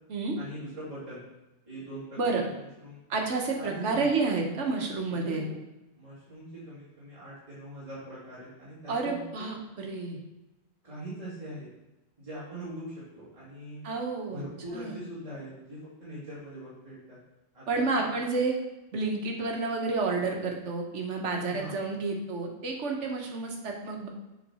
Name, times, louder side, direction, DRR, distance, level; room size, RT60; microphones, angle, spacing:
voice 1, 0.4-1.2 1.6-3.0 3.6-4.1 5.1-5.6 5.9-9.2 10.8-11.7 12.2-13.9 14.3-17.2 17.5-18.2 21.5-21.8, right 1 dB, 30° right, -11 dB, 2.0 m, -42 dB
voice 2, 3.1-5.5 8.9-10.2 13.8-14.4 14.7-15.0 17.7-18.5 18.9-24.1, right 3 dB, 80° right, 1 dB, 1.4 m, -30 dB
7.3 x 3.8 x 4.2 m, 0.98 s
omnidirectional pair, 1.2 m